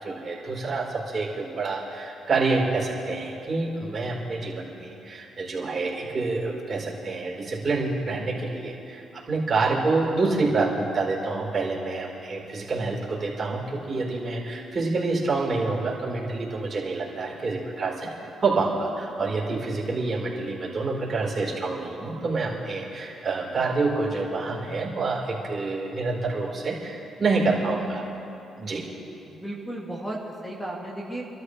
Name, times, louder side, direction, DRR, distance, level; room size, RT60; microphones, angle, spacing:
voice 1, 0.0-28.0 28.6-28.8, right 3 dB, 40° right, -3 dB, 4.1 m, -27 dB
voice 2, 28.7-31.3, right 1 dB, 5° left, -3 dB, 2.0 m, -35 dB
28.0 x 13.0 x 3.3 m, 2.9 s
cardioid pair, 90°, 0 cm